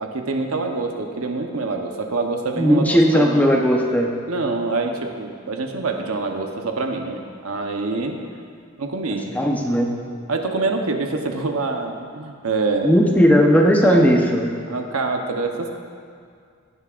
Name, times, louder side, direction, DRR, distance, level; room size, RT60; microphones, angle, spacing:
voice 1, 0.0-2.8 3.1-3.4 4.3-8.2 8.8-9.3 10.3-13.0 13.8-14.2 14.7-15.8, right 3 dB, 85° right, 3 dB, 1.0 m, -25 dB
voice 2, 2.6-4.1 9.3-9.9 12.8-14.5, equal, 10° left, 0 dB, 0.8 m, -16 dB
16.5 x 9.9 x 2.5 m, 2.2 s
head